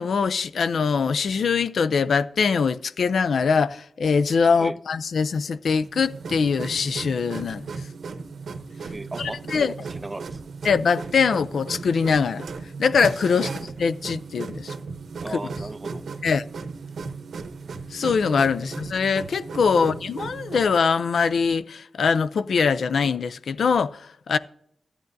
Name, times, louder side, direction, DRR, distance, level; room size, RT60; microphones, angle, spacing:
voice 1, 0.0-7.7 9.2-9.7 10.6-12.5 12.8-13.5 13.8-14.7 16.2-16.4 17.9-24.4, left 5 dB, 80° left, 0.4 m, -22 dB
sound 1, 5.8-20.7, right 4 dB, 85° right, 0.8 m, -36 dB
voice 2, 8.9-10.4 13.3-13.5 15.2-16.0 18.6-18.7 19.7-19.9, right 2 dB, 20° right, 0.4 m, -37 dB
14.0 x 8.6 x 2.6 m
wide cardioid pair, 140°, 0 cm